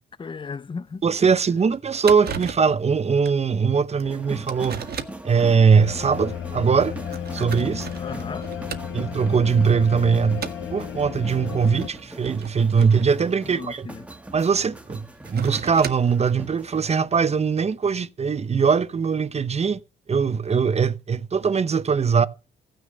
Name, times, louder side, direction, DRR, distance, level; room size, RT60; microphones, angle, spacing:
voice 1, 0.2-1.0 7.9-8.5 13.4-14.0, left 5 dB, 25° left, 0.6 m, -35 dB
sound 1, 0.9-1.0 1.4-1.5 1.7-1.8 2.0-2.8 3.3-3.4 4.0-4.1 4.5-5.3 6.1-6.2 6.9-9.2 9.6-9.9 10.4-10.7 11.6-14.2 15.0-16.2, right 7 dB, 50° right, 1.8 m, -36 dB
voice 2, 1.0-4.8 5.2-7.0 7.3-7.9 8.9-10.4 10.7-13.9 14.3-19.8 20.1-22.3, right 6 dB, 30° right, 0.9 m, -21 dB
sound 2, 4.0-16.8, right 1 dB, 5° right, 1.7 m, -41 dB
sound 3, 5.7-11.9, left 8 dB, 80° left, 1.7 m, -33 dB
15.5 x 6.5 x 7.6 m
cardioid pair, 90°, 20 cm